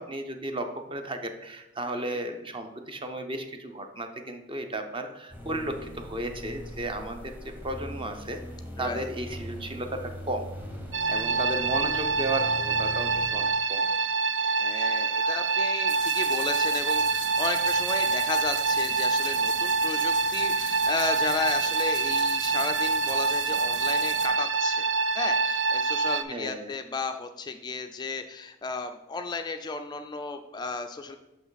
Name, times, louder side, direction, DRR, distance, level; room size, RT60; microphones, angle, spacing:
voice 1, 0.0-8.4 8.8-10.5 11.1-13.9 26.3-26.7, right 1 dB, 25° right, 6 dB, 0.7 m, -34 dB
sound 1, 5.3-13.3, equal, 10° right, 1.1 m, -41 dB
voice 2, 8.8-9.1 11.3-11.5 14.4-31.2, left 4 dB, 20° left, 7 dB, 0.3 m, -34 dB
sound 2, 10.9-26.2, right 4 dB, 80° right, 0.5 m, -26 dB
sound 3, 15.9-24.3, right 3 dB, 45° right, 1.2 m, -40 dB
6.2 x 5.7 x 4.0 m, 0.94 s
head